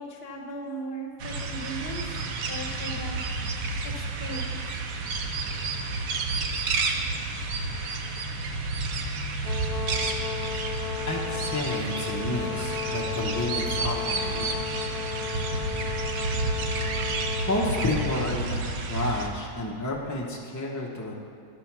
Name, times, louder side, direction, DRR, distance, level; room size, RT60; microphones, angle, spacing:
voice 1, 0.0-3.2 3.8-4.8, right 1 dB, 45° left, 2 dB, 1.1 m, -38 dB
sound 1, 1.2-19.3, right 3 dB, 70° right, 1.1 m, -30 dB
Brass instrument, 9.4-18.4, left 9 dB, 80° left, 1.1 m, -35 dB
voice 2, 11.1-14.5 17.5-21.1, left 1 dB, 20° left, -3 dB, 0.5 m, -30 dB
11.5 x 5.0 x 5.9 m, 2.3 s
omnidirectional pair, 1.6 m